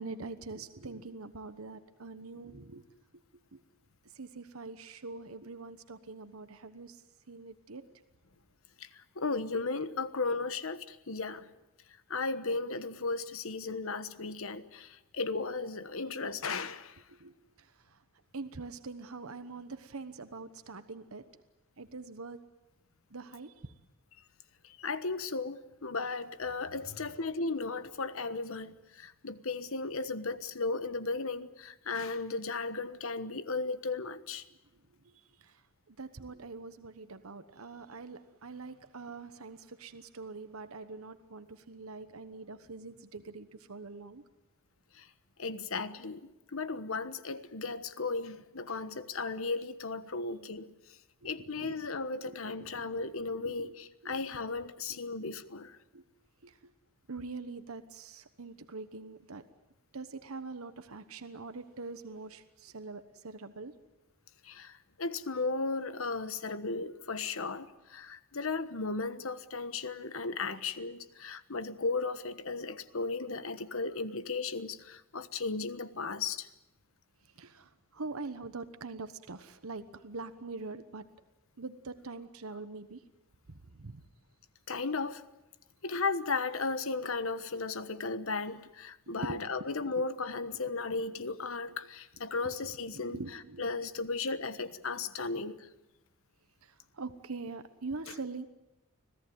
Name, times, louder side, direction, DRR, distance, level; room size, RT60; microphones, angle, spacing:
voice 1, 0.0-2.8 3.5-3.6 4.1-7.0 7.3-7.9 17.1-18.0 18.3-21.2 21.8-22.4 23.1-23.7 35.4-35.6 35.9-44.2 51.2-51.9 52.2-53.7 54.0-54.2 54.9-55.0 55.9-56.0 56.4-56.6 57.1-59.4 59.9-63.7 77.4-81.1 81.6-83.0 83.7-84.0 89.1-90.1 90.6-90.8 92.4-93.7 94.3-94.4 95.4-95.5 96.6-98.4, right 3 dB, 80° right, 1.2 m, -44 dB
voice 2, 9.2-11.4 12.1-17.0 24.8-34.4 45.0-45.1 45.4-46.2 46.5-50.7 51.2-55.7 64.4-76.5 84.7-85.2 85.8-93.2 93.6-95.7 98.1-98.2, left 3 dB, 70° left, 1.3 m, -35 dB
26.0 x 17.5 x 9.4 m
head